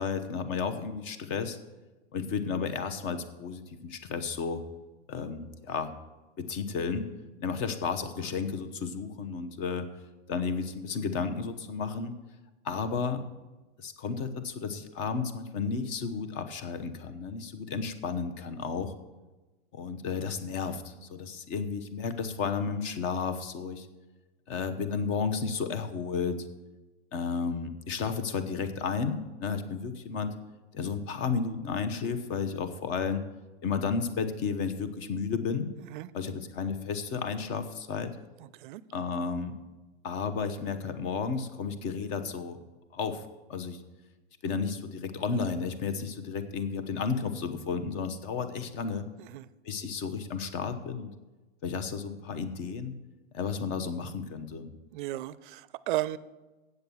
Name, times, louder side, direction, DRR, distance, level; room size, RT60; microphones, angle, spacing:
voice 1, 0.0-1.6 2.1-4.6 5.1-5.9 6.4-7.1 7.4-9.9 10.3-12.1 12.6-13.3 13.8-18.9 19.7-23.9 24.5-26.5 27.1-30.3 30.7-33.2 33.6-35.7 36.1-38.2 38.9-39.6 40.0-42.6 42.9-43.2 43.5-43.8 44.4-49.1 49.6-51.1 51.6-52.9 53.3-54.7, left 5 dB, 35° left, 10 dB, 1.0 m, -32 dB
voice 2, 38.4-38.8 49.2-49.5 54.9-56.2, right 16 dB, 50° right, 18 dB, 0.5 m, -34 dB
8.1 x 7.8 x 7.1 m, 1.1 s
supercardioid pair, 145°, 34 cm